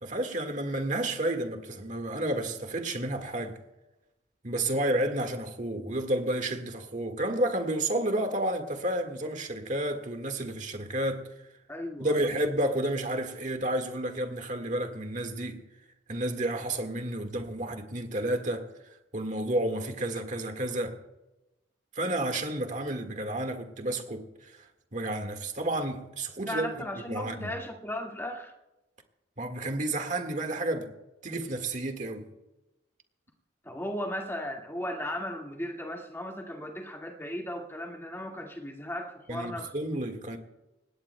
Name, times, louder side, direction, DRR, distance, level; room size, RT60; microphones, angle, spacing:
voice 1, 0.0-3.6 4.4-11.3 12.0-15.6 16.1-18.7 19.1-21.0 22.0-24.5 24.9-26.7 27.1-27.5 29.4-30.9 31.2-32.3 39.3-40.4, right 1 dB, 40° right, 1.7 m, -31 dB
voice 2, 11.7-12.3 26.4-28.5 33.6-39.8, left 1 dB, 10° left, 1.9 m, -36 dB
26.0 x 19.0 x 2.2 m
head